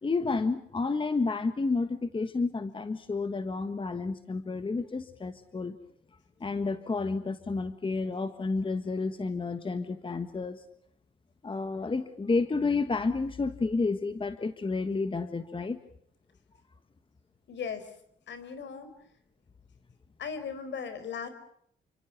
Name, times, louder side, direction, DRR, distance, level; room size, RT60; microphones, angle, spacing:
voice 1, 0.0-5.8 6.4-10.6 11.4-15.8, left 3 dB, 25° left, 10 dB, 1.5 m, -30 dB
voice 2, 17.5-18.0 18.3-18.9 20.2-21.3, left 6 dB, 65° left, 12 dB, 4.7 m, -37 dB
29.5 x 25.5 x 6.0 m, 0.69 s
cardioid pair, 90°, 20 cm